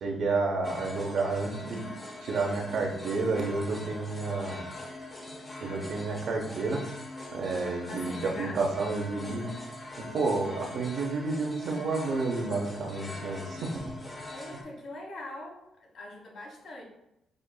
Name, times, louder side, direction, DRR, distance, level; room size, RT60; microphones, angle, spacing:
voice 1, 0.0-1.8 2.2-4.6 5.6-6.8 7.3-9.5 10.0-13.9, right 3 dB, 65° right, 1 dB, 0.8 m, -30 dB
sound 1, 0.6-14.6, left 2 dB, 25° left, 0.7 m, -42 dB
voice 2, 7.9-8.6 14.3-16.8, left 2 dB, 60° left, -2 dB, 1.3 m, -42 dB
6.4 x 2.6 x 2.2 m, 0.82 s
cardioid pair, 90°, 0 cm